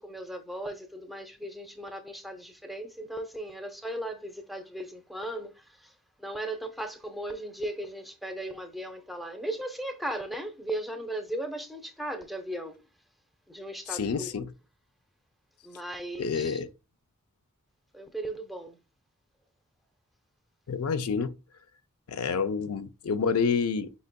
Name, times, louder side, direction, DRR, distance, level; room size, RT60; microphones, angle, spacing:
voice 1, 0.0-5.9 6.2-12.8 13.5-14.3 15.6-16.6 17.9-18.8, right 1 dB, ahead, 0.5 m, -37 dB
voice 2, 13.9-14.5 16.2-16.7 20.7-21.3 22.1-23.9, left 5 dB, 75° left, 0.5 m, -28 dB
5.1 x 3.9 x 2.2 m
head